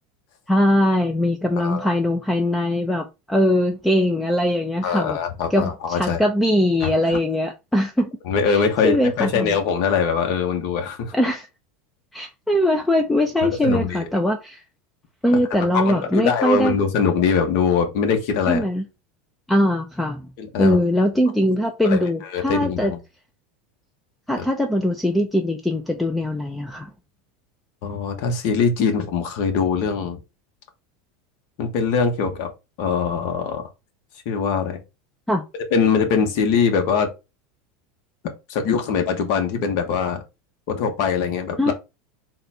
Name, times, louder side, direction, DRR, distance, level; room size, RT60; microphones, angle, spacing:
voice 1, 0.5-5.2 5.5-8.1 8.5-9.5 11.1-11.5 12.1-14.6 15.2-16.8 18.5-18.8 19.5-20.3 20.6-22.9 24.3-26.9 35.3-35.5 41.6-41.7, left 1 dB, 5° left, 0.4 m, -21 dB
voice 2, 1.6-1.9 4.8-6.2 7.1-7.2 8.2-11.1 13.6-14.0 15.5-18.6 20.4-20.8 21.8-23.0 27.8-30.2 31.6-32.5 32.8-33.7 34.2-34.8 35.5-37.1 38.5-40.2 40.7-41.7, left 6 dB, 55° left, 1.1 m, -22 dB
3.8 x 2.3 x 4.1 m
supercardioid pair, 150°, 0 cm